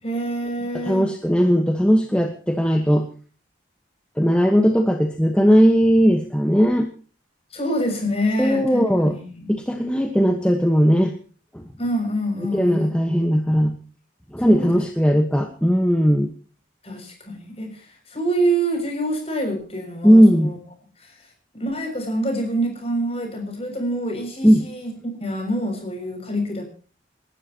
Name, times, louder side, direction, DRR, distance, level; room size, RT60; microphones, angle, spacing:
voice 1, 0.0-1.1 7.5-9.5 11.8-13.0 14.5-14.7 16.8-20.6 21.0-21.1 21.5-26.7, right 1 dB, 30° left, 3 dB, 6.5 m, -26 dB
voice 2, 0.8-3.1 4.2-6.9 8.4-9.2 9.5-11.1 11.5-11.6 12.5-13.8 14.3-16.3 20.0-20.5 24.4-24.7, equal, 5° left, 4 dB, 1.2 m, -17 dB
28.5 x 12.5 x 2.9 m, 0.40 s
head